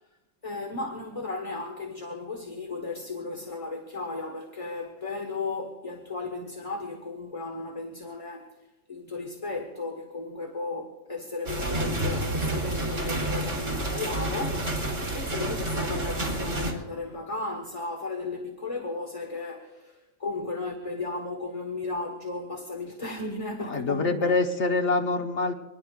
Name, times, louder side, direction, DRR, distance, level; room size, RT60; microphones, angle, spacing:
voice 1, 0.4-8.6 8.9-14.7 15.1-24.4, left 3 dB, 30° left, 1.3 m, -35 dB
sound 1, 11.5-16.7, right 1 dB, 75° right, 3.3 m, -29 dB
voice 2, 23.6-25.5, left 3 dB, 65° left, 1.4 m, -25 dB
24.5 x 20.0 x 2.4 m
omnidirectional pair, 1.3 m